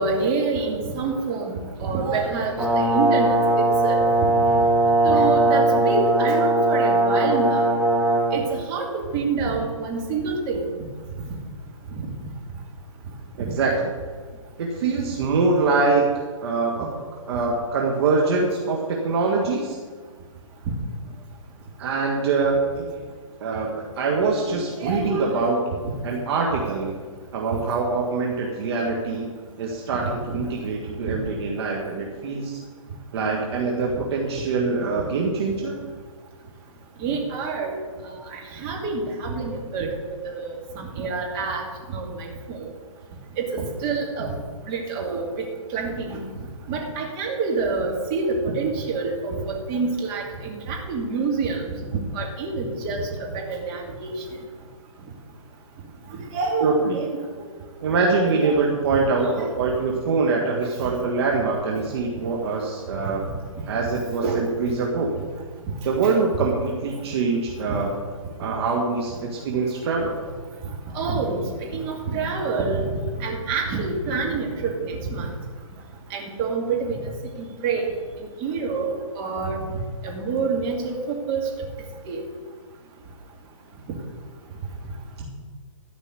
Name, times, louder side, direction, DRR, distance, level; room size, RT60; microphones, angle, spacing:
voice 1, 0.0-1.5 1.8-4.1 5.0-7.6 8.3-10.6 13.4-13.5 24.5-25.6 30.3-30.4 37.0-37.7 38.3-39.9 40.2-41.6 41.9-42.6 43.4-44.4 44.7-45.2 45.7-46.2 46.7-51.6 52.1-54.1 56.3-57.0 58.2-58.4 59.2-59.5 64.2-64.4 70.9-71.4 71.7-72.9 73.2-75.3 76.1-77.1 77.6-77.9 78.4-78.9 79.2-79.6 80.0-81.4 82.1-82.2, right 4 dB, 30° right, -1 dB, 2.6 m, -27 dB
Brass instrument, 2.6-8.4, right 2 dB, 5° right, 1.7 m, -19 dB
voice 2, 13.4-13.9 14.6-16.1 16.4-16.9 17.3-19.8 21.8-23.1 23.4-25.6 26.0-26.9 27.3-32.6 33.1-35.8 56.6-57.0 57.8-63.3 63.7-65.1 65.8-67.9 68.4-70.2, right 4 dB, 50° right, -1 dB, 1.7 m, -24 dB
13.5 x 5.3 x 8.2 m, 1.5 s
hypercardioid pair, 135°, 18 cm